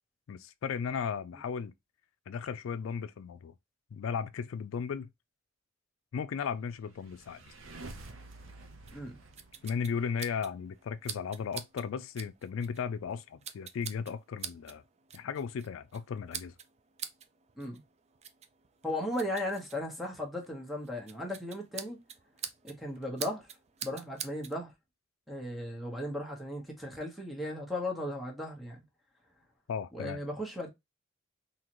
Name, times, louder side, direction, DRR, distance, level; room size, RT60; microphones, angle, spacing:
voice 1, 0.3-1.7 2.3-3.5 3.9-5.1 6.1-7.4 9.6-14.8 15.1-16.5 29.7-30.2, left 6 dB, 75° left, 0.4 m, -36 dB
sound 1, 6.8-10.4, right 2 dB, 75° right, 0.8 m, -49 dB
sound 2, 8.9-24.6, right 8 dB, 35° right, 0.4 m, -47 dB
voice 2, 18.8-22.0 22.6-23.5 23.8-24.7 25.3-28.8 29.9-30.7, left 1 dB, ahead, 1.1 m, -36 dB
3.8 x 2.8 x 3.0 m
head